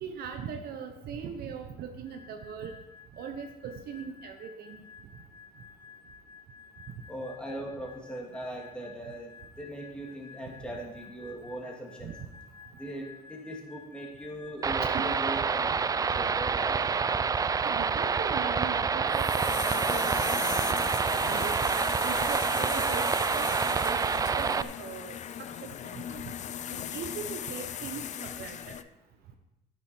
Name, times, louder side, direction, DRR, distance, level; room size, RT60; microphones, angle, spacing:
voice 1, 0.0-2.7 3.2-4.8 12.0-12.1 14.8-15.1 17.6-20.6 21.3-25.2 25.6-26.2 26.7-28.8, right 7 dB, 65° right, 5 dB, 1.0 m, -40 dB
sound 1, 2.0-15.8 17.6-19.8, left 6 dB, 25° left, 1.7 m, -52 dB
voice 2, 7.1-12.1 12.7-16.8, right 1 dB, 5° left, -1 dB, 2.5 m, -40 dB
sound 2, 14.6-24.6, right 5 dB, 20° right, 0.4 m, -27 dB
sound 3, 17.6-28.8, left 9 dB, 45° left, 0.5 m, -38 dB
10.5 x 9.6 x 4.5 m, 0.93 s
cardioid pair, 110°, 17 cm